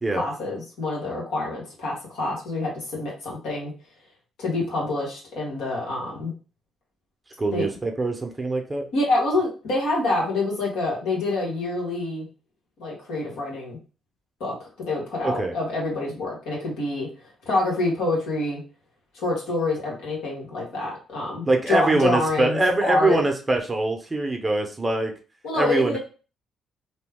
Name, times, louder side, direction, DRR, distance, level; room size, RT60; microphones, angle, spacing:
voice 1, 0.1-3.7 4.4-6.3 7.5-7.7 8.9-12.3 12.8-13.8 14.4-18.6 19.1-23.2 25.4-26.0, left 2 dB, 85° left, -3 dB, 1.4 m, -27 dB
voice 2, 7.4-8.9 15.2-15.5 21.5-25.1 25.6-26.0, right 2 dB, 20° right, 3 dB, 0.6 m, -23 dB
3.0 x 2.2 x 3.5 m, 0.36 s
cardioid pair, 90°, 0 cm